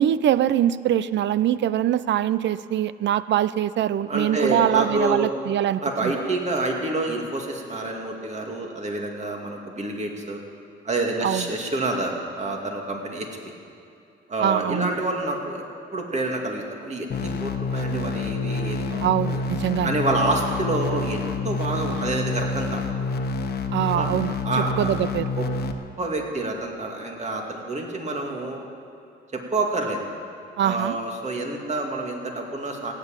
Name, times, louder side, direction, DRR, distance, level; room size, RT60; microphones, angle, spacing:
voice 1, 0.0-6.1 11.2-11.5 14.4-14.9 19.0-20.0 23.7-25.3 30.6-31.0, right 11 dB, 65° right, 16 dB, 0.5 m, -23 dB
voice 2, 4.1-5.3 5.8-10.4 10.8-13.5 14.3-15.6 15.9-19.4 19.8-22.8 23.9-24.1 24.4-24.7 25.4-25.5 26.0-28.7 29.3-30.1 30.6-32.9, right 2 dB, 35° right, 1 dB, 2.4 m, -28 dB
sound 1, 17.1-25.7, left 3 dB, 50° left, 1.2 m, -28 dB
16.5 x 8.3 x 8.9 m, 2.6 s
cardioid pair, 90°, 20 cm